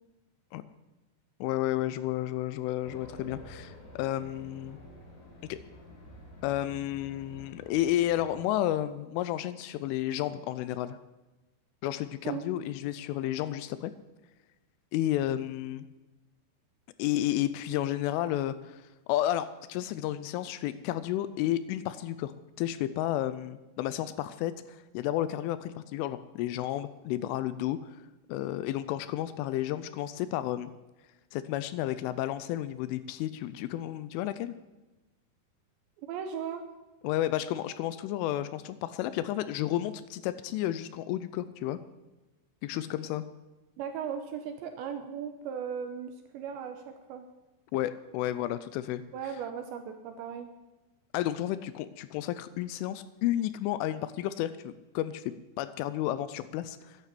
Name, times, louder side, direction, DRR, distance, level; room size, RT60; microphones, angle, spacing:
voice 1, 1.4-4.8 5.5-5.6 6.4-11.0 11.8-13.9 14.9-15.9 17.0-22.3 22.6-28.0 28.3-30.7 31.3-34.6 37.0-41.8 42.6-43.2 47.7-49.0 51.1-57.0, left 13 dB, 80° left, 14 dB, 3.0 m, -32 dB
Race car auto racing, 2.8-8.4, left 1 dB, 40° left, 4.0 m, -50 dB
voice 2, 36.1-36.6 43.8-47.3 49.1-50.5, right 7 dB, 75° right, 7 dB, 2.8 m, -37 dB
11.5 x 10.5 x 8.3 m, 1.1 s
omnidirectional pair, 5.9 m